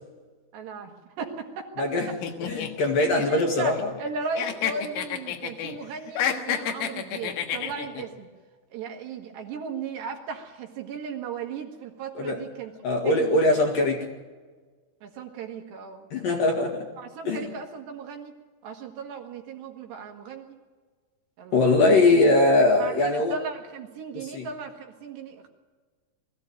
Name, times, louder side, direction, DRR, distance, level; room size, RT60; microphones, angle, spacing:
voice 1, 0.5-2.2 2.7-2.8 3.1-3.7 4.0-8.3 8.7-12.7 13.0-13.9 15.0-16.1 17.0-18.3 18.6-20.6 21.4-21.9 22.8-25.5, right 5 dB, 65° right, 2 dB, 3.6 m, -37 dB
voice 2, 1.8-2.1 2.4-3.9 12.2-12.4 12.8-14.0 16.1-16.9 17.2-17.4 21.5-23.4 24.2-24.5, left 2 dB, 55° left, 1 dB, 2.9 m, -21 dB
sound 1, 2.2-4.1 4.4-5.8 6.1-8.0, left 9 dB, 85° left, 4.2 m, -30 dB
22.0 x 15.0 x 9.0 m, 1.4 s
omnidirectional pair, 5.8 m